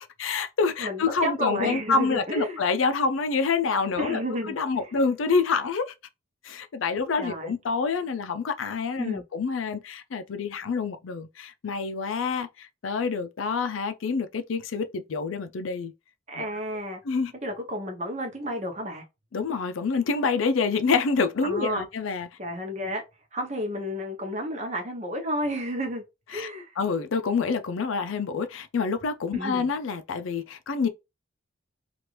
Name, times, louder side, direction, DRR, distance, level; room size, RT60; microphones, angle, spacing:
voice 1, 0.2-4.2 4.5-5.9 6.4-15.9 16.4-16.5 17.1-17.3 19.3-22.3 26.3-26.5 26.8-30.9, left 4 dB, 85° left, 0.5 m, -27 dB
voice 2, 0.8-2.6 4.0-4.5 4.8-4.9 7.2-7.5 9.0-9.2 16.3-17.0 17.4-19.0 21.4-21.9 22.4-23.0 23.3-26.0 26.3-26.7 29.3-29.7, equal, 35° right, 0.8 m, -31 dB
3.0 x 2.5 x 3.1 m
head